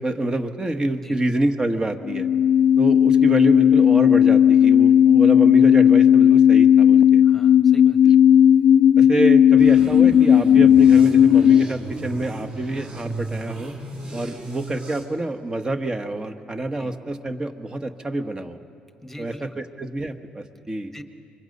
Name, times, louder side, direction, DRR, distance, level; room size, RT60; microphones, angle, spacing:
voice 1, 0.0-2.3 2.8-7.2 8.0-8.1 9.0-13.7 14.1-18.6 19.2-20.9, right 2 dB, 25° right, 7 dB, 1.4 m, -27 dB
sound 1, 2.0-11.7, left 9 dB, 60° left, 0.4 m, -14 dB
voice 2, 7.2-8.0 16.7-16.9 19.0-19.6 20.9-21.0, left 1 dB, 5° left, 7 dB, 1.5 m, -42 dB
sound 2, 9.6-15.0, right 2 dB, 40° right, 4.6 m, -34 dB
25.0 x 22.5 x 5.5 m, 2.6 s
cardioid pair, 85°, 3 cm